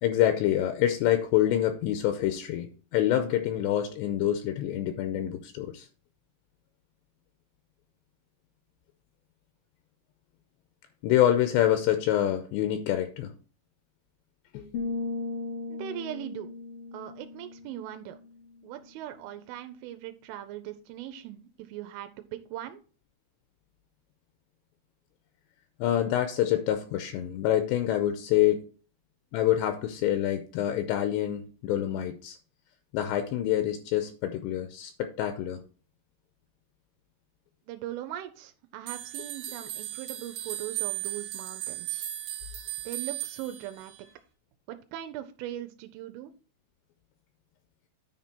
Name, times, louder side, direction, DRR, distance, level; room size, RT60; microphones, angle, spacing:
voice 1, 0.0-5.9 11.0-13.3 14.5-14.7 25.8-28.7 29.3-32.4 32.9-35.6, left 12 dB, 90° left, 8 dB, 2.5 m, -26 dB
sound 1, 14.7-18.4, left 3 dB, 70° left, 1.5 m, -37 dB
voice 2, 15.7-16.5 16.9-18.2 18.6-22.8 37.7-42.1 42.9-43.9 44.7-46.3, right 12 dB, 85° right, 8 dB, 3.1 m, -40 dB
sound 2, 38.9-44.1, right 14 dB, 70° right, 3.0 m, -36 dB
9.7 x 4.4 x 4.2 m, 0.38 s
omnidirectional pair, 5.6 m